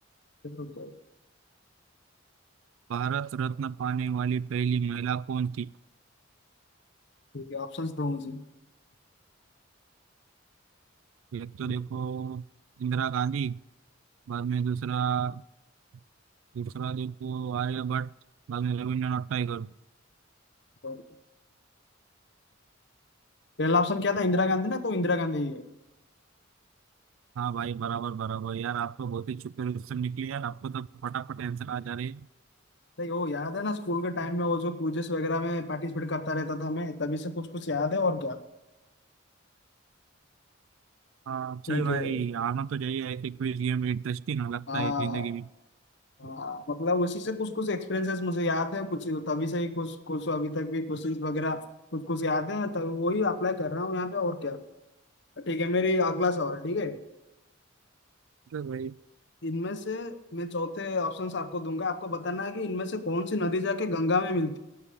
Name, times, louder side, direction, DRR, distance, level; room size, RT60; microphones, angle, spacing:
voice 1, 0.4-0.9 7.3-8.4 20.8-21.0 23.6-25.6 33.0-38.4 41.7-42.2 44.7-45.3 46.2-51.6 51.9-54.6 55.4-57.0 59.4-64.6, left 2 dB, 60° left, 1.0 m, -29 dB
voice 2, 2.9-5.7 11.3-12.4 12.8-13.6 14.3-15.4 16.5-18.1 18.5-19.7 27.4-32.3 41.3-45.5 58.5-58.9, right 7 dB, 85° right, 0.3 m, -31 dB
18.0 x 7.0 x 5.1 m
head